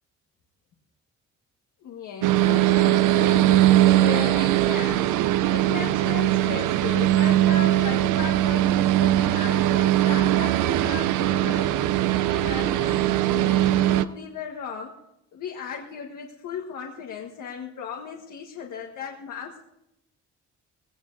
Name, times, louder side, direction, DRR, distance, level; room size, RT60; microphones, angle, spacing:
voice 1, 1.8-11.7 12.3-14.9 15.3-19.6, left 7 dB, 80° left, 1 dB, 1.5 m, -36 dB
sound 1, 2.2-14.1, right 14 dB, 85° right, 0.6 m, -20 dB
19.0 x 17.5 x 2.7 m, 0.88 s
cardioid pair, 90°, 30 cm